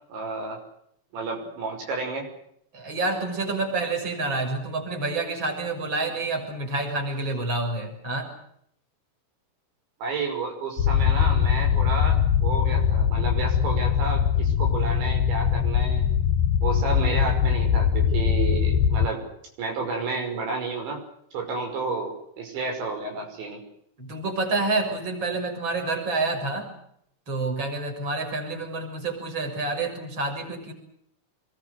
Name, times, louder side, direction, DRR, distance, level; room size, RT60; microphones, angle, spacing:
voice 1, 0.1-0.6 1.1-2.3 10.0-16.0 16.6-19.2 19.6-21.0 21.3-23.6, right 3 dB, 75° right, 2 dB, 8.0 m, -31 dB
voice 2, 2.7-8.3 24.0-26.7 27.3-30.7, right 3 dB, 25° right, 3 dB, 7.3 m, -28 dB
sound 1, 10.8-19.1, left 8 dB, 65° left, 2.7 m, -22 dB
27.0 x 22.5 x 8.1 m, 0.71 s
omnidirectional pair, 5.3 m